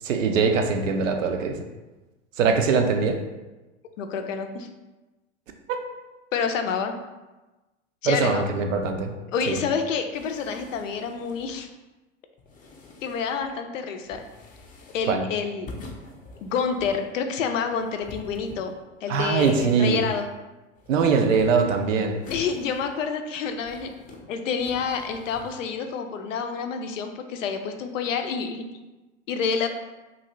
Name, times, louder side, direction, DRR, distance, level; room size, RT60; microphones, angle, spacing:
voice 1, 0.0-1.6 2.4-3.2 5.7-5.8 8.0-9.1 9.5-9.6 15.1-15.3 19.1-20.0 20.9-22.2, right 5 dB, 85° right, 4 dB, 0.5 m, -22 dB
voice 2, 4.0-4.7 6.3-6.9 8.0-8.4 9.3-11.7 13.0-14.2 14.9-15.8 16.4-18.7 19.0-20.3 22.3-23.9 24.3-28.6 29.3-29.7, left 6 dB, 80° left, 6 dB, 0.5 m, -28 dB
sound 1, 10.1-11.6 12.4-13.5 14.0-15.2 15.7-17.1 17.7-18.9 19.4-20.4 20.8-21.7 22.2-23.2 23.5-24.2 24.6-25.5, left 3 dB, 20° left, 0.5 m, -45 dB
2.6 x 2.6 x 3.0 m, 1.1 s
hypercardioid pair, 90°, 38 cm